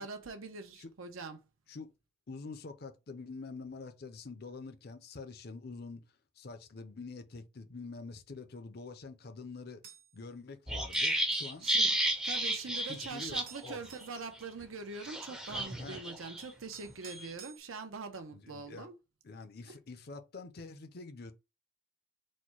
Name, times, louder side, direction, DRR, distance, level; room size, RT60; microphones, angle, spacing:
voice 1, 0.0-1.4 11.6-11.9 12.2-19.0 19.6-19.8, right 4 dB, 85° right, 0.8 m, -43 dB
voice 2, 2.3-6.1 6.4-9.8 10.1-11.7 12.9-13.8 15.8-16.0 18.3-18.9 19.2-21.3, left 3 dB, 50° left, 0.5 m, -46 dB
sound 1, 9.8-10.1 10.9-11.6 12.9-13.0 13.5-14.2 15.7-15.8 16.4-17.6, right 7 dB, 45° right, 0.8 m, -53 dB
sound 2, 10.7-13.8 14.0-14.2 15.0-16.4 16.9-17.3, right 1 dB, 5° right, 0.5 m, -32 dB
4.2 x 2.2 x 4.5 m
head